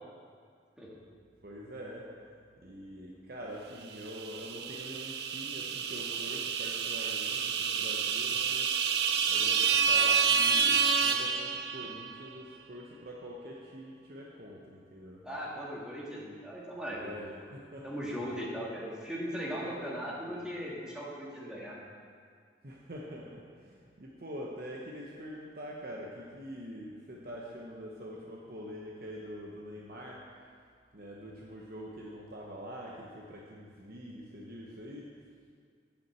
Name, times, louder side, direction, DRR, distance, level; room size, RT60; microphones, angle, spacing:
voice 1, 1.4-8.8 9.3-15.2 17.0-17.9 19.5-20.4 22.6-30.5 30.9-35.1, equal, 55° right, -3 dB, 0.9 m, -45 dB
sound 1, 4.1-12.1, right 6 dB, 70° right, 0.6 m, -29 dB
voice 2, 15.2-17.2 17.8-21.8, equal, 5° right, -6 dB, 1.7 m, -38 dB
8.6 x 5.7 x 7.6 m, 2.1 s
head